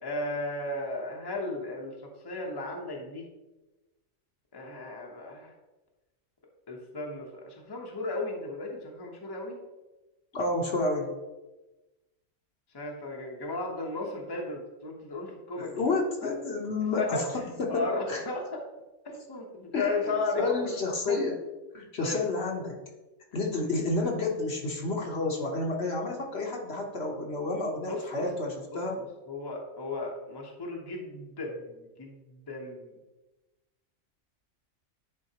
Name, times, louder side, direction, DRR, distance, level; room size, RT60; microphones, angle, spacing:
voice 1, 0.0-1.9 2.2-3.2 4.5-5.5 6.7-9.6 12.7-15.7 16.2-16.3 16.9-18.6 19.0-20.7 21.1-21.2 22.0-22.2 27.9-28.3 29.3-32.9, left 3 dB, 20° left, 0 dB, 0.8 m, -35 dB
voice 2, 10.3-11.1 15.6-17.3 17.6-18.2 19.7-21.4 21.7-22.8 23.3-29.0, left 2 dB, 55° left, 0 dB, 1.1 m, -30 dB
10.0 x 3.9 x 2.9 m, 1.1 s
omnidirectional pair, 1.4 m